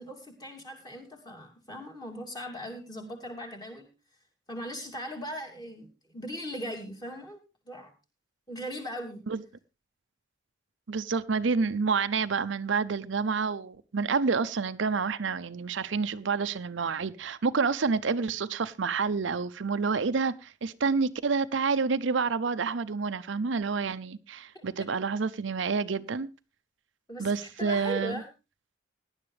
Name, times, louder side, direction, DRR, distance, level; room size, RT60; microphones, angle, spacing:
voice 1, 0.0-3.9 4.5-7.4 7.7-7.9 8.5-9.2 24.5-24.6 27.1-28.3, equal, 20° left, 2.8 m, -39 dB
voice 2, 10.9-26.3 27.2-28.2, right 5 dB, 70° right, 0.6 m, -28 dB
18.0 x 10.5 x 3.2 m
head